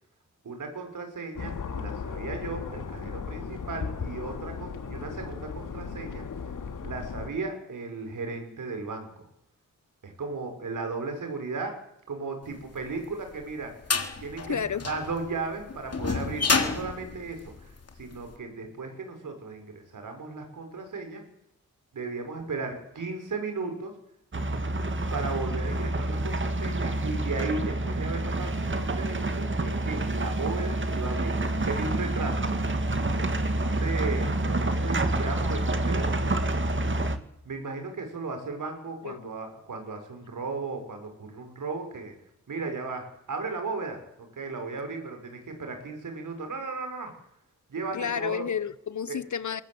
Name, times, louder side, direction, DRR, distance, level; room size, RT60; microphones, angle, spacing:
voice 1, 0.4-6.2 6.8-9.3 10.0-11.8 12.1-13.7 14.2-21.2 21.9-23.9 25.1-31.4 31.6-32.5 33.5-36.1 37.4-42.1 42.5-47.1 47.7-48.5 49.1-49.2, right 3 dB, 85° right, 5 dB, 6.6 m, -35 dB
sound 1, 1.4-7.3, left 5 dB, 85° left, 2.8 m, -36 dB
sound 2, 12.8-18.2, left 4 dB, 50° left, 3.5 m, -29 dB
voice 2, 14.5-14.8 39.0-39.3 47.9-49.6, left 7 dB, 70° left, 15 dB, 1.4 m, -31 dB
sound 3, 24.3-37.2, right 2 dB, 40° right, 2.2 m, -28 dB
22.5 x 20.5 x 8.2 m, 0.79 s
wide cardioid pair, 105°, 31 cm